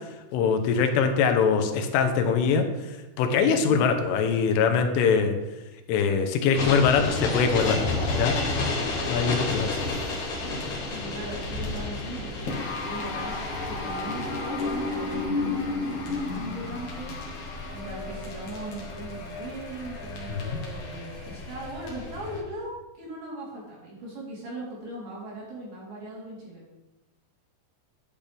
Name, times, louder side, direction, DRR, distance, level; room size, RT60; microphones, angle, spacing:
voice 1, 0.3-2.7 3.2-5.4 5.9-7.9 8.1-8.4 9.1-10.0 20.3-20.6, left 6 dB, 85° left, 6 dB, 3.5 m, -23 dB
voice 2, 3.6-3.9 10.9-17.4 17.7-26.7, right 1 dB, 50° right, -6 dB, 5.3 m, -39 dB
sound 1, 6.5-22.4, left 3 dB, 50° left, 2.5 m, -31 dB
11.5 x 10.0 x 3.5 m, 1.0 s
omnidirectional pair, 5.6 m